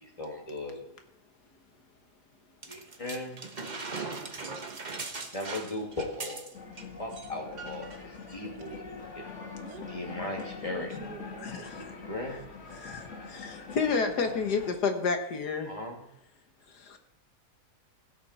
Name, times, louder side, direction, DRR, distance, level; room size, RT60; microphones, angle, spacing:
voice 1, 0.0-0.9 2.7-3.4 5.3-6.4 7.0-7.9 8.3-9.2 9.9-10.9 11.8-12.4 15.6-16.0, left 1 dB, 20° left, 2.5 m, -37 dB
sound 1, 2.6-6.8 7.1-7.3 7.6-8.0 8.7-8.8, right 4 dB, 30° right, 1.1 m, -39 dB
sound 2, 6.5-14.7, left 4 dB, 50° left, 2.1 m, -43 dB
voice 2, 9.6-10.0 10.7-11.7, right 7 dB, 85° right, 1.8 m, -47 dB
voice 3, 11.4-11.9 12.7-15.7 16.7-17.0, left 4 dB, 85° left, 1.9 m, -31 dB
16.5 x 8.2 x 4.3 m
omnidirectional pair, 1.7 m